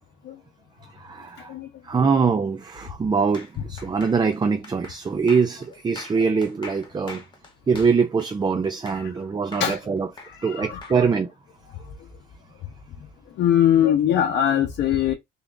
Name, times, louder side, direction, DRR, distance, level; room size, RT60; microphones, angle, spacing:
voice 1, 0.9-1.5 1.8-7.2 7.7-10.1 10.4-11.3 14.9-15.0, right 5 dB, 25° right, 0.4 m, -23 dB
sound 1, 3.3-9.2 9.5-11.0, left 3 dB, 25° left, 1.1 m, -43 dB
voice 2, 10.2-10.7 13.4-15.1, left 10 dB, 80° left, 0.7 m, -21 dB
3.6 x 2.3 x 3.7 m
cardioid pair, 120°, 18 cm